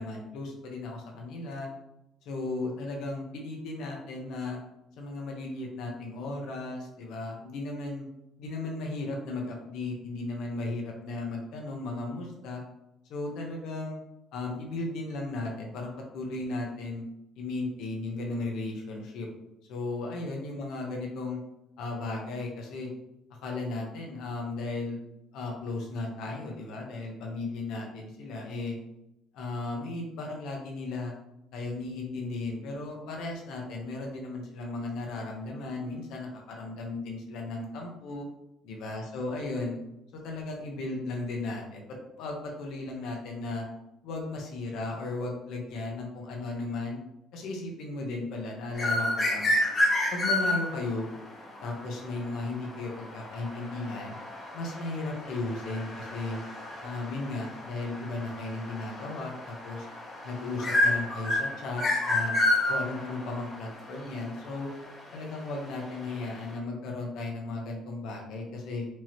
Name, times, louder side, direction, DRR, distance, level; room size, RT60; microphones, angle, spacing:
voice 1, 0.0-1.7 2.2-4.6 5.0-8.1 8.4-12.6 13.1-14.0 14.3-17.0 17.4-19.3 19.7-21.4 21.8-22.9 23.3-25.0 25.3-28.8 29.3-31.1 31.5-38.3 38.6-39.8 40.1-41.8 42.2-43.6 44.0-47.0 47.3-49.5 50.1-51.0 51.6-54.2 54.5-56.4 56.8-59.9 60.2-62.3 62.7-64.7 65.1-68.9, left 2 dB, 65° left, 0 dB, 0.8 m, -35 dB
Butcher Bird In Suburbia, 48.7-66.5, left 1 dB, 20° left, 0.9 m, -31 dB
4.6 x 2.9 x 2.9 m, 0.85 s
cardioid pair, 175°, 0 cm